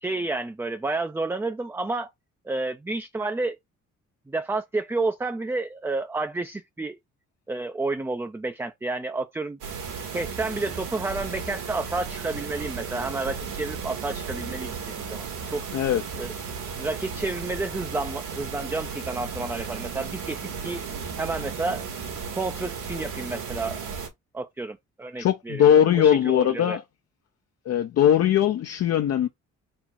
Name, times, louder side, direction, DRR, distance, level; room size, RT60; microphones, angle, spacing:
voice 1, 0.0-2.1 2.4-3.6 4.3-7.0 7.5-9.6 10.1-15.7 16.2-16.3 16.7-20.8 21.2-21.9 22.4-24.0 24.3-26.8, right 3 dB, 10° right, 0.3 m, -30 dB
sound 1, 9.6-24.1, right 6 dB, 80° right, 1.9 m, -35 dB
voice 2, 25.2-26.8 27.7-29.3, left 10 dB, 55° left, 0.5 m, -20 dB
4.3 x 2.4 x 4.4 m
cardioid pair, 90°, 30 cm